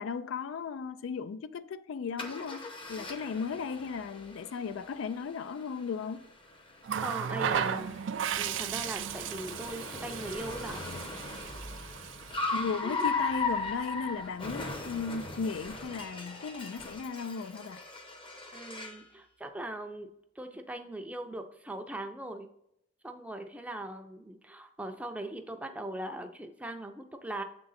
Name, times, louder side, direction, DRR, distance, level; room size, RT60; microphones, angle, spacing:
voice 1, 0.0-6.2 12.5-17.8, left 5 dB, 80° left, 0.4 m, -36 dB
Car, 2.2-19.1, left 3 dB, 25° left, 0.8 m, -39 dB
Water tap faucet, 6.8-12.4 13.6-13.8, right 8 dB, 65° right, 0.4 m, -35 dB
voice 2, 7.0-8.0 8.4-10.9 12.8-13.1 18.5-20.1 20.4-22.5 23.0-27.4, right 1 dB, 5° right, 0.5 m, -40 dB
6.8 x 3.8 x 4.0 m
head